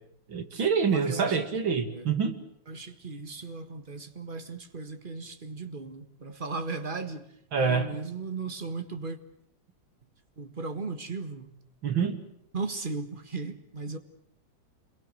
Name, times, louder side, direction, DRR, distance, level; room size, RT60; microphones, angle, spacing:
voice 1, 0.3-2.4 7.5-7.9 11.8-12.2, right 6 dB, 80° right, 3.1 m, -26 dB
voice 2, 0.8-1.5 1.9-2.1 2.7-7.3 7.6-9.2 10.4-11.6 12.5-14.0, right 4 dB, 25° right, 1.8 m, -36 dB
27.5 x 22.5 x 8.0 m
omnidirectional pair, 2.1 m